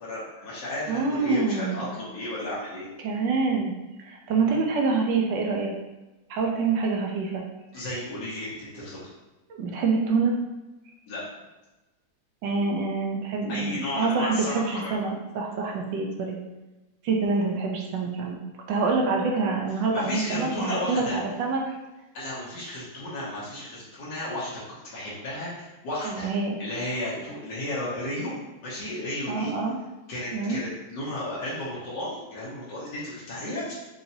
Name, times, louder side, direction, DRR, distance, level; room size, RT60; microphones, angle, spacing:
voice 1, 0.0-2.9 4.2-4.4 7.7-9.1 11.1-11.2 13.5-15.0 19.9-21.2 22.1-26.3 26.6-28.3 28.6-29.5 30.1-33.8, left 1 dB, 70° left, -8 dB, 1.8 m, -33 dB
voice 2, 0.9-1.8 3.0-3.7 4.0-5.7 6.3-7.4 7.8-7.9 9.6-10.4 12.4-16.4 17.0-18.4 18.7-21.6 26.0-26.6 29.3-29.8 30.3-30.6, right 4 dB, 90° right, 0 dB, 1.4 m, -26 dB
5.6 x 2.8 x 2.7 m, 1.0 s
omnidirectional pair, 1.9 m